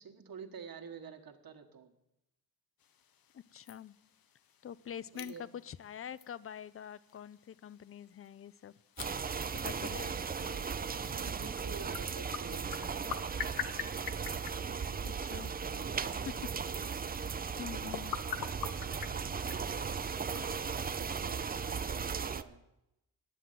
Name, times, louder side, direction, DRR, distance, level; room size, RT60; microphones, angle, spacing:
voice 1, 0.0-1.9 5.1-5.5 10.3-16.9 17.8-22.6, right 6 dB, 65° right, 4 dB, 1.5 m, -50 dB
sound 1, 2.8-22.4, left 8 dB, 65° left, 0.7 m, -47 dB
voice 2, 3.3-4.0 4.6-5.3 5.6-8.7 9.6-10.1 15.0-15.5 17.6-18.2, left 9 dB, 35° left, 20 dB, 0.4 m, -46 dB
sound 2, 9.0-22.4, right 6 dB, 25° right, 0.4 m, -37 dB
10.0 x 7.3 x 9.3 m, 0.91 s
cardioid pair, 80°, 38 cm